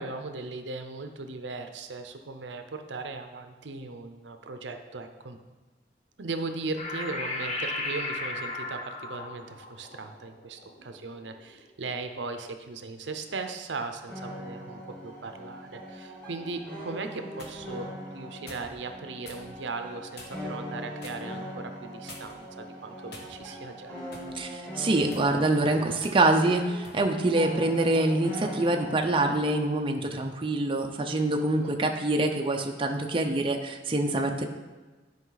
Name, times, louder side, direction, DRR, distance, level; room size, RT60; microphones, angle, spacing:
voice 1, 0.0-5.4 6.2-24.0 31.6-31.8, right 3 dB, 80° right, 6 dB, 0.7 m, -38 dB
sound 1, 6.8-11.6, left 2 dB, 40° left, 1.0 m, -35 dB
sound 2, 14.1-29.5, equal, 10° left, 2.2 m, -41 dB
sound 3, 17.0-17.6 18.5-18.7 19.2-19.5 20.1-20.5 21.0-21.2 22.1-22.5 23.1-23.6 24.1-24.3 25.0-25.3 26.0-26.2 26.8-27.0, left 2 dB, 65° left, 1.3 m, -46 dB
voice 2, 24.3-34.5, right 2 dB, 30° right, 3 dB, 0.6 m, -25 dB
11.0 x 5.2 x 4.0 m, 1.2 s
head